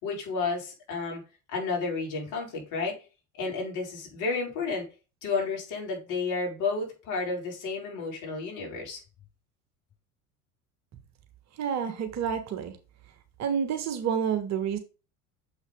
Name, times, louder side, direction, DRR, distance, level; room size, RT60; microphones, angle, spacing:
voice 1, 0.0-1.2 1.5-3.0 3.4-4.9 5.2-9.0, left 4 dB, 45° left, 4.3 m, -31 dB
voice 2, 11.6-12.7 13.4-14.8, right 7 dB, 40° right, 1.4 m, -29 dB
6.9 x 5.6 x 3.5 m
figure-of-eight pair, 70°, 42 cm